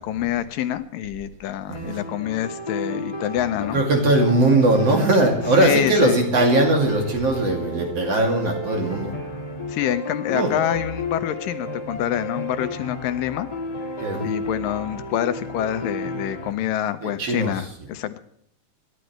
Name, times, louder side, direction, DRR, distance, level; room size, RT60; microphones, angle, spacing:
voice 1, 0.0-3.8 5.6-6.2 9.7-13.5 14.2-18.2, left 11 dB, 80° left, 11 dB, 2.4 m, -26 dB
sound 1, 1.7-16.5, left 2 dB, 20° left, 0.9 m, -32 dB
voice 2, 3.7-9.1 10.3-10.5 14.0-14.3 17.0-17.5, right 2 dB, 45° right, 2 dB, 3.4 m, -20 dB
26.5 x 12.0 x 3.2 m, 0.69 s
omnidirectional pair, 4.0 m